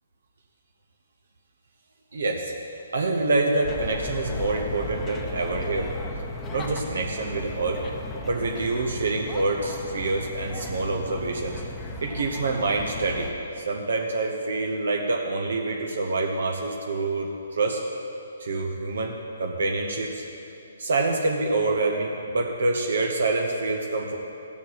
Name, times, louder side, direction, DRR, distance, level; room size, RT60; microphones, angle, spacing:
voice 1, 2.1-2.5 2.9-5.9 6.5-7.8 8.3-11.6 12.0-17.8 18.4-20.2 20.8-24.2, right 3 dB, 75° right, 1 dB, 0.9 m, -26 dB
sound 1, 3.6-13.3, left 2 dB, 15° left, 0.8 m, -35 dB
15.0 x 7.1 x 4.2 m, 2.8 s
hypercardioid pair, 150°, 0 cm